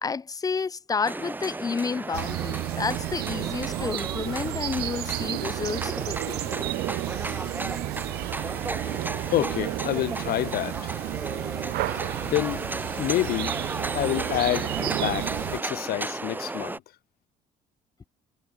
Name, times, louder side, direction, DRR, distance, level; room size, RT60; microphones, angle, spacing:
voice 1, 0.0-6.5, left 5 dB, 20° left, 0.6 m, -30 dB
sound 1, 1.0-16.8, right 2 dB, 10° right, 0.9 m, -34 dB
sound 2, 2.1-15.6, right 18 dB, 70° right, 0.4 m, -32 dB
sound 3, 5.2-15.6, left 6 dB, 35° left, 4.0 m, -55 dB
voice 2, 9.3-11.0 12.2-12.6 13.0-13.5 13.9-16.8, left 14 dB, 65° left, 0.8 m, -28 dB
cardioid pair, 110°, 17 cm